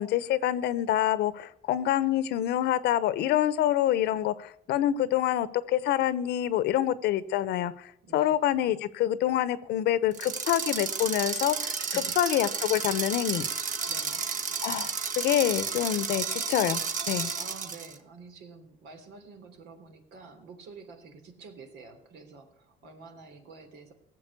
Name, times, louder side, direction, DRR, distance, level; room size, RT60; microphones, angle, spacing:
voice 1, 0.0-11.8 12.2-13.4 14.6-16.8 17.1-17.3, left 12 dB, 80° left, 16 dB, 1.0 m, -26 dB
voice 2, 8.0-8.4 11.8-12.2 13.9-14.2 17.3-23.9, right 4 dB, 80° right, 5 dB, 3.3 m, -48 dB
sound 1, 10.1-17.9, right 5 dB, 50° right, 1.7 m, -32 dB
17.5 x 7.7 x 8.3 m, 0.71 s
cardioid pair, 110°, 17 cm